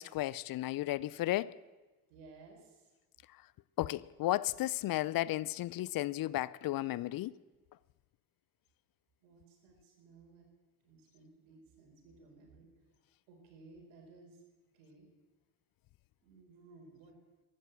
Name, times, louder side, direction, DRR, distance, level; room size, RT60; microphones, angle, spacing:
voice 1, 0.0-1.5 3.8-7.3, left 15 dB, 50° left, 0.6 m, -34 dB
voice 2, 2.1-2.9 9.2-10.5 10.8-12.7 13.3-14.4 14.7-15.1 16.2-17.1, right 3 dB, 75° right, 4.6 m, -58 dB
14.5 x 12.0 x 7.6 m
hypercardioid pair, 60°, 44 cm